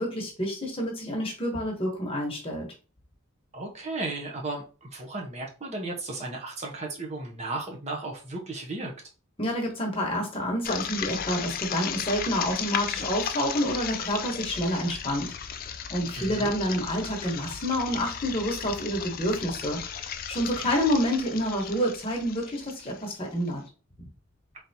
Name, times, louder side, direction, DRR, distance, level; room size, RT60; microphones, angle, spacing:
voice 1, 0.0-2.7 9.4-23.6, equal, 25° left, 0 dB, 1.1 m, -28 dB
voice 2, 3.5-8.9 16.2-16.5, right 2 dB, 30° right, 0 dB, 0.6 m, -35 dB
sound 1, 10.6-23.5, left 8 dB, 45° left, 0.3 m, -35 dB
4.0 x 3.3 x 2.8 m, 0.35 s
head